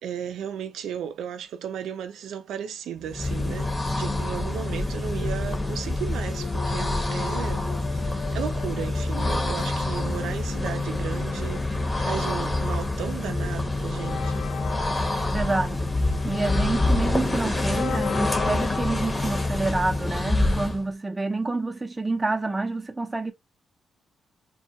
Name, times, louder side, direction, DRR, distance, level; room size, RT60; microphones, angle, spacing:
voice 1, 0.0-14.5, right 9 dB, 85° right, 0.4 m, -35 dB
sound 1, 3.0-20.9, left 2 dB, 20° left, 0.8 m, -27 dB
sound 2, 6.3-12.8, left 5 dB, 85° left, 0.9 m, -40 dB
sound 3, 13.9-20.7, left 6 dB, 60° left, 0.3 m, -35 dB
voice 2, 15.2-15.9 16.2-23.3, right 3 dB, 20° right, 0.6 m, -28 dB
2.2 x 2.2 x 2.7 m
cardioid pair, 80°, 0 cm